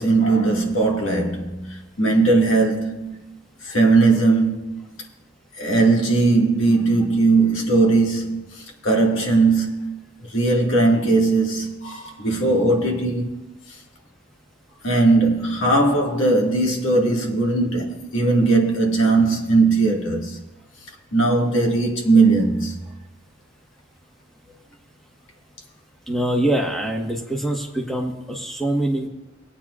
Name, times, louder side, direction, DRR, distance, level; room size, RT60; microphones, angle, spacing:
voice 1, 0.0-3.3 3.6-5.0 5.6-10.0 10.2-13.4 14.8-20.4 21.1-22.8, right 3 dB, 75° left, 1.8 m, -19 dB
voice 2, 26.1-29.1, right 1 dB, ahead, 1.3 m, -24 dB
20.5 x 8.7 x 2.4 m
head